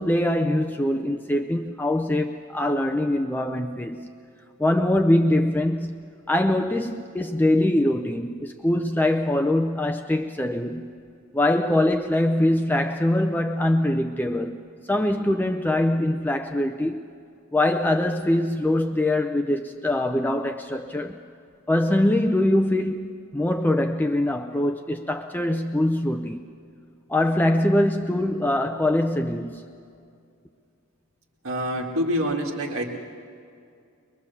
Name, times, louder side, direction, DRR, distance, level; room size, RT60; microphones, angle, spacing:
voice 1, 0.0-4.1 4.6-10.9 11.3-14.6 14.8-17.0 17.5-21.2 21.7-26.4 27.1-29.6, left 1 dB, 10° left, 0.5 m, -23 dB
voice 2, 31.4-32.9, equal, 75° right, 2.0 m, -26 dB
23.5 x 21.5 x 7.0 m
head